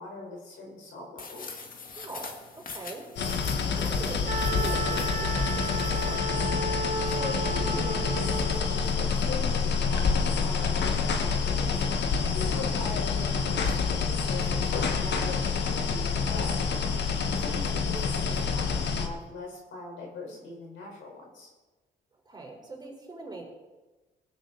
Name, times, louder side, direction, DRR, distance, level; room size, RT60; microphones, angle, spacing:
voice 1, 0.0-1.6 7.0-11.8 12.3-16.6 17.3-21.5, left 3 dB, 75° left, -1 dB, 4.6 m, -41 dB
sound 1, 1.2-6.2, left 4 dB, 45° left, 1.8 m, -44 dB
voice 2, 1.9-3.1 3.4-6.3 12.2-12.7 22.3-23.4, right 3 dB, 20° right, -1 dB, 4.3 m, -42 dB
sound 2, 3.2-19.1, left 5 dB, 60° left, 1.5 m, -27 dB
Wind instrument woodwind instrument, 4.3-8.9, right 2 dB, 40° right, 2.2 m, -33 dB
20.5 x 8.9 x 4.1 m, 1.2 s
cardioid pair, 90°, 20 cm